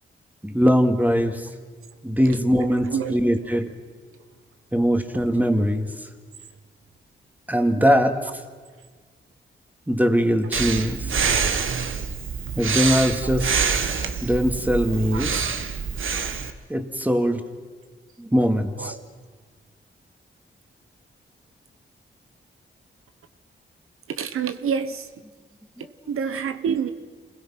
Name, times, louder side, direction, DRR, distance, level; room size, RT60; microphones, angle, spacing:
voice 1, 0.4-1.5 2.0-3.7 4.7-5.9 7.5-8.3 9.9-11.2 12.6-13.6 14.2-15.3 16.7-17.4 18.2-18.9, equal, 10° right, 6 dB, 2.2 m, -21 dB
voice 2, 2.8-3.2 15.1-15.3 18.8-19.1 24.1-25.1 25.8-26.9, right 7 dB, 90° right, 10 dB, 1.0 m, -28 dB
Breathing, 10.5-16.5, right 6 dB, 70° right, 1.5 m, -26 dB
27.5 x 21.5 x 5.8 m, 1.5 s
cardioid pair, 60°, 21 cm